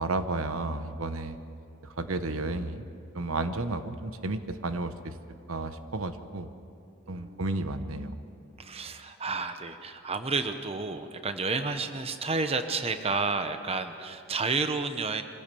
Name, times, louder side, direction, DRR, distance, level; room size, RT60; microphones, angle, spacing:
voice 1, 0.0-1.4 1.8-2.9 3.1-5.2 5.5-6.5 7.1-8.1, right 2 dB, 75° right, 10 dB, 1.0 m, -32 dB
voice 2, 7.1-7.4 8.6-15.2, right 4 dB, 30° right, 8 dB, 0.9 m, -31 dB
25.0 x 16.0 x 6.9 m, 2.5 s
head